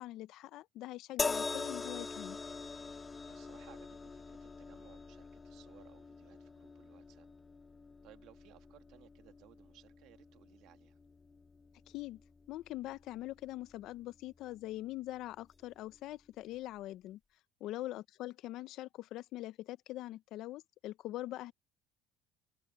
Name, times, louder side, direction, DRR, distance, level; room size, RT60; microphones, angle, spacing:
voice 1, 0.0-2.4 11.9-12.2 12.5-17.2 17.6-21.5, left 16 dB, 60° left, 0.7 m, -43 dB
sound 1, 1.2-14.5 15.5-15.7, left 4 dB, 20° left, 1.5 m, -44 dB
voice 2, 3.3-7.3 8.0-11.0 17.6-17.9, right 15 dB, 65° right, 2.2 m, -62 dB
open air
cardioid pair, 120°, 0 cm